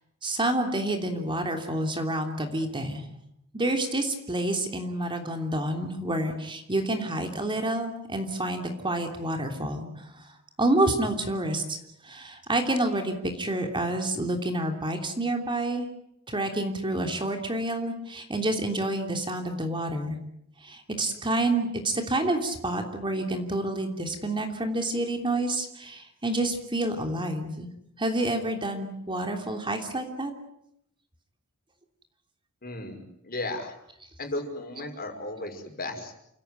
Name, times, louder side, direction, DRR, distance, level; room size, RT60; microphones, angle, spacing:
voice 1, 0.2-3.0 3.5-10.2 10.6-15.9 16.3-20.2 20.6-27.7 28.0-30.3, right 1 dB, 20° right, 4 dB, 3.1 m, -28 dB
voice 2, 32.6-33.7 34.2-36.1, left 2 dB, 45° left, 4 dB, 5.8 m, -35 dB
29.5 x 16.5 x 9.3 m, 0.77 s
head